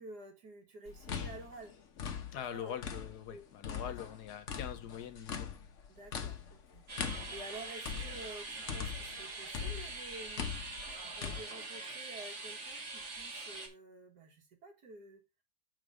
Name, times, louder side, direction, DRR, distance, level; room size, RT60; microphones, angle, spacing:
voice 1, 0.0-1.8 2.5-2.8 3.3-3.4 3.9-4.0 5.9-10.6 11.1-15.2, right 2 dB, 90° right, 2.2 m, -50 dB
sound 1, 0.9-3.3 3.6-9.2 9.5-11.4, left 7 dB, 55° left, 1.2 m, -41 dB
voice 2, 2.3-5.6, left 9 dB, 80° left, 1.5 m, -43 dB
sound 2, 6.9-13.7, right 3 dB, 50° right, 1.8 m, -44 dB
6.8 x 4.3 x 4.9 m
omnidirectional pair, 1.7 m